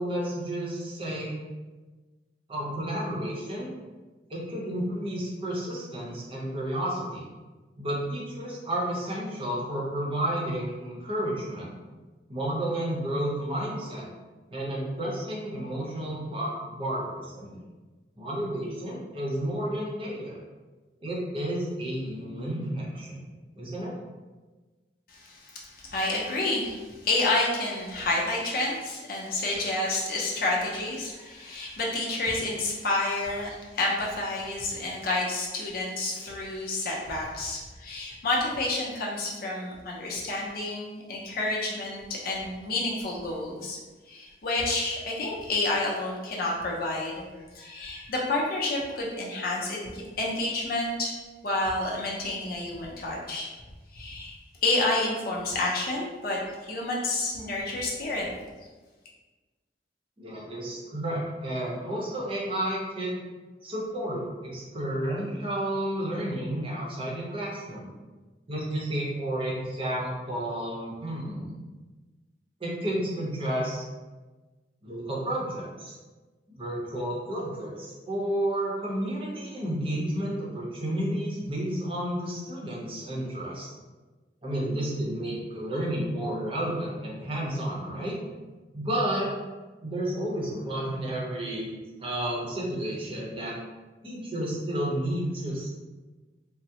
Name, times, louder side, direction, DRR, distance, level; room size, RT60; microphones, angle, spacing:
voice 1, 0.0-1.3 2.5-3.7 4.3-7.2 7.8-11.7 12.3-14.1 14.5-17.6 18.2-20.4 21.0-23.2 23.5-23.9 60.2-63.2 63.6-67.9 68.5-71.6 72.6-73.8 74.8-76.0 76.6-83.7 84.4-88.2 88.7-89.3 89.8-93.6 94.0-95.7, right 1 dB, 30° right, -4 dB, 0.7 m, -31 dB
voice 2, 25.1-43.8 44.1-47.2 47.5-51.1 51.4-53.5 53.9-58.3, left 2 dB, 55° left, -3 dB, 0.5 m, -29 dB
3.4 x 2.0 x 2.8 m, 1.3 s
head